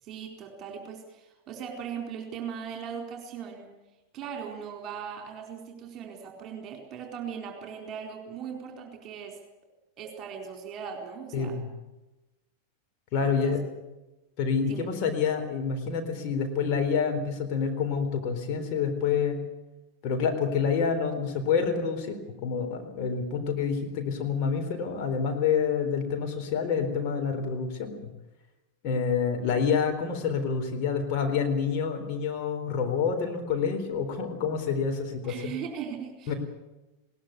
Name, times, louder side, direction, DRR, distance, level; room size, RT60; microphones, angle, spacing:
voice 1, 0.0-3.7 4.1-9.4 10.0-11.6 13.2-13.6 14.7-14.9 35.2-36.3, right 7 dB, 30° right, 3 dB, 4.3 m, -39 dB
voice 2, 11.3-11.7 13.1-13.6 14.4-19.4 20.0-27.9 28.8-35.5 36.3-36.4, left 6 dB, 40° left, 4 dB, 3.9 m, -28 dB
21.0 x 19.0 x 8.3 m, 1.0 s
figure-of-eight pair, 90°, 0 cm